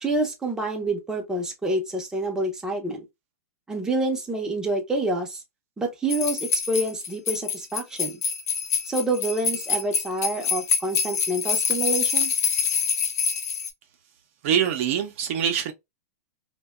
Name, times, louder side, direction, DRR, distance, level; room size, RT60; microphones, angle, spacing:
voice 1, 0.0-3.0 3.7-5.4 5.8-8.2 8.9-12.3, right 2 dB, 5° right, 0.6 m, -27 dB
sound 1, 6.1-13.7, left 6 dB, 80° left, 0.6 m, -25 dB
voice 2, 14.4-15.7, right 9 dB, 55° right, 0.5 m, -24 dB
2.7 x 2.2 x 2.2 m
hypercardioid pair, 125°, 9 cm